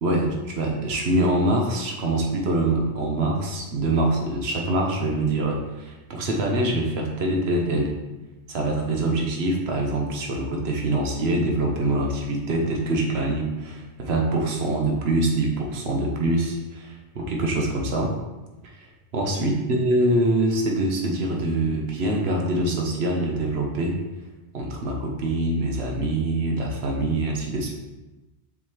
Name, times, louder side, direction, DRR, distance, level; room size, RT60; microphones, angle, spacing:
voice 1, 0.0-7.9 8.5-18.1 19.1-24.0 24.5-27.7, right 1 dB, 65° right, 0 dB, 1.3 m, -24 dB
7.3 x 4.1 x 3.2 m, 1.1 s
omnidirectional pair, 1.1 m